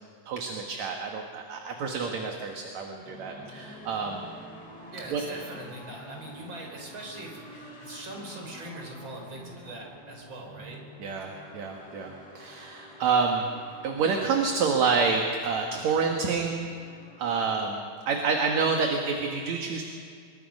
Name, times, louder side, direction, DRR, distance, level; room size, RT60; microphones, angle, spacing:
voice 1, 0.3-4.3 5.1-5.2 11.0-13.5 13.8-16.6 17.2-17.8 18.1-19.8, right 5 dB, 65° right, 2 dB, 2.7 m, -28 dB
sound 1, 3.0-17.5, equal, 70° left, 7.2 m, -48 dB
voice 2, 4.9-10.8, right 1 dB, 40° right, 0 dB, 5.1 m, -42 dB
25.5 x 23.0 x 5.4 m, 2.3 s
omnidirectional pair, 3.6 m